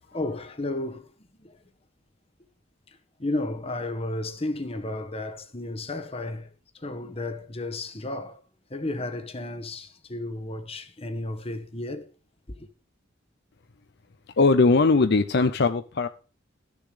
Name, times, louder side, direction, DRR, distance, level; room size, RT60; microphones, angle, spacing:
voice 1, 0.1-1.1 1.4-1.5 3.2-6.5 6.7-8.4 8.7-12.1 12.5-12.7, left 2 dB, 30° left, 1.1 m, -33 dB
voice 2, 14.4-16.1, left 3 dB, 55° left, 0.6 m, -20 dB
13.5 x 6.9 x 4.8 m
head